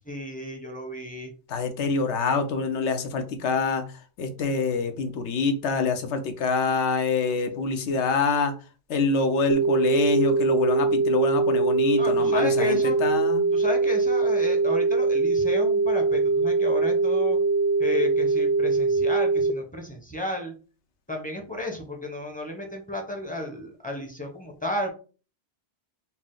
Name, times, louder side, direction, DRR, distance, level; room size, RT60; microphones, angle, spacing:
voice 1, 0.1-1.3 12.0-13.0 13.5-17.4 17.8-20.5 21.1-24.9, left 2 dB, 10° left, 1 dB, 0.8 m, -33 dB
voice 2, 1.5-3.8 4.2-8.5 8.9-13.5, left 4 dB, 80° left, 7 dB, 1.0 m, -25 dB
sound 1, 9.5-19.5, right 3 dB, 55° right, 0.4 m, -22 dB
4.3 x 2.0 x 3.8 m, 0.36 s
omnidirectional pair, 1.1 m